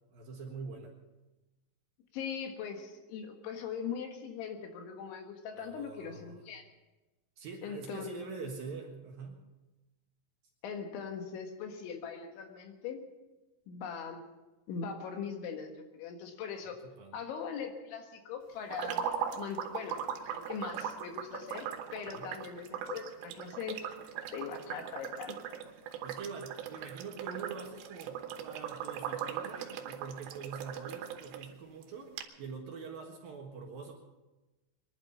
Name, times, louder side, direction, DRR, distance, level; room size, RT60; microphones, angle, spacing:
voice 1, 0.1-0.9 5.5-6.4 7.4-9.4 16.6-17.2 22.1-22.3 26.0-33.9, right 5 dB, 60° right, 1 dB, 2.8 m, -44 dB
voice 2, 2.1-6.7 7.6-8.1 10.6-13.0 13.7-14.2 14.7-16.8 17.1-19.1 19.3-23.8 24.3-25.6, left 6 dB, 75° left, 4 dB, 3.8 m, -41 dB
sound 1, 18.7-31.5 31.8-31.9 32.2-32.3, right 8 dB, 90° right, 3.7 m, -39 dB
23.0 x 11.5 x 5.6 m, 1.1 s
omnidirectional pair, 5.6 m